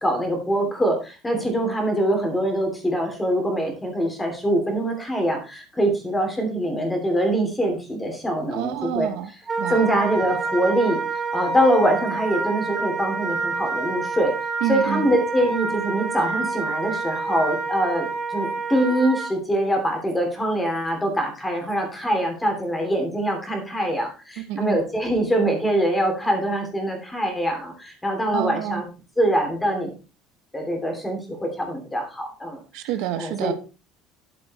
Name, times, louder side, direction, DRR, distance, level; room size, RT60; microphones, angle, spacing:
voice 1, 0.0-9.1 9.7-11.0 11.3-14.3 14.7-28.8 29.2-29.9 30.5-32.6 33.2-33.5, right 1 dB, 10° left, 3 dB, 3.0 m, -23 dB
voice 2, 8.5-9.3 9.6-9.9 14.6-15.1 24.4-24.8 28.3-28.8 32.7-33.5, right 12 dB, 70° right, 10 dB, 1.1 m, -28 dB
Wind instrument woodwind instrument, 9.5-19.3, right 4 dB, 15° right, 1.8 m, -28 dB
11.5 x 7.3 x 4.2 m, 0.32 s
cardioid pair, 165°, 0 cm